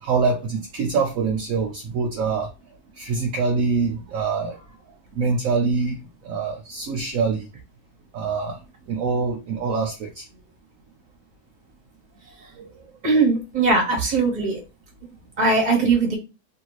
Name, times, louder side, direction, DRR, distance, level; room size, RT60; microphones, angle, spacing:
voice 1, 0.0-2.5 3.0-4.6 5.1-7.5 8.1-8.6 8.9-10.2 12.6-12.7 13.1-13.3, right 4 dB, 65° right, 1.0 m, -25 dB
voice 2, 13.0-14.6 15.4-16.2, right 3 dB, 30° right, 1.3 m, -20 dB
3.2 x 2.6 x 3.0 m
omnidirectional pair, 1.6 m